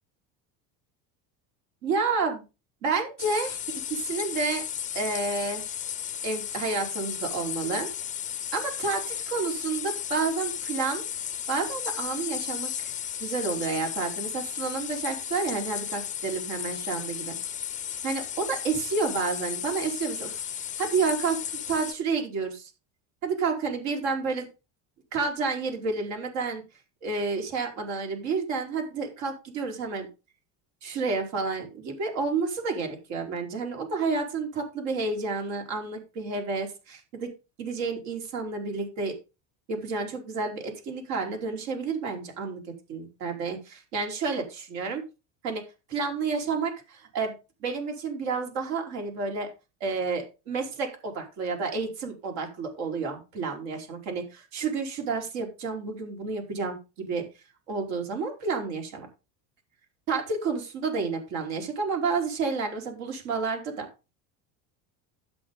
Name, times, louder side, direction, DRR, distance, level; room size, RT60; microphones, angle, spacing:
voice 1, 1.8-2.4 2.8-3.6 3.9-4.6 4.9-5.7 6.2-7.9 8.5-11.0 11.5-12.9 13.2-17.4 18.0-20.4 20.8-21.4 21.7-22.7 23.2-24.5 25.1-26.6 27.0-30.1 30.8-37.3 37.6-39.1 39.7-42.6 42.9-45.0 45.4-45.6 45.9-47.3 47.6-49.5 49.8-57.2 57.7-59.1 60.1-63.9, right 4 dB, 80° right, 3 dB, 4.8 m, -30 dB
sound 1, 3.2-21.9, left 9 dB, 20° left, 0.4 m, -34 dB
12.5 x 8.2 x 3.9 m, 0.29 s
cardioid pair, 135°, 40 cm